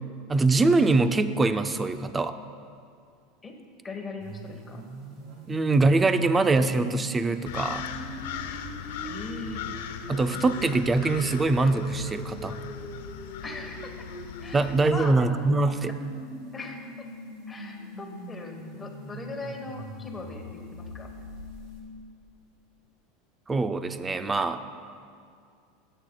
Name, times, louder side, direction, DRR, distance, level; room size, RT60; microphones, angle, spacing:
voice 1, 0.3-2.4 5.5-7.9 10.1-12.6 14.5-15.9 23.5-24.6, right 3 dB, 15° right, 10 dB, 0.4 m, -23 dB
voice 2, 3.8-4.8 9.0-9.6 10.3-10.4 13.4-14.1 14.4-15.2 16.5-16.9 17.5-20.4 20.7-21.1, left 3 dB, 15° left, 2 dB, 1.2 m, -39 dB
sound 1, 4.2-21.8, equal, 55° right, 2.8 m, -42 dB
sound 2, 7.5-15.1, left 8 dB, 85° left, 0.6 m, -38 dB
23.0 x 8.2 x 2.3 m, 2.3 s
supercardioid pair, 160°, 0 cm